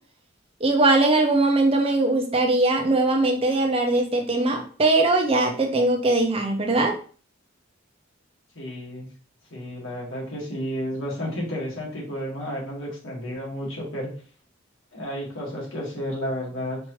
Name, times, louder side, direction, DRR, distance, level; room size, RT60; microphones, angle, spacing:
voice 1, 0.6-6.9, right 2 dB, 30° right, 3 dB, 0.6 m, -21 dB
voice 2, 8.6-9.1 9.5-14.1 14.9-16.8, equal, 80° left, -3 dB, 1.8 m, -32 dB
4.5 x 2.7 x 3.1 m, 0.41 s
head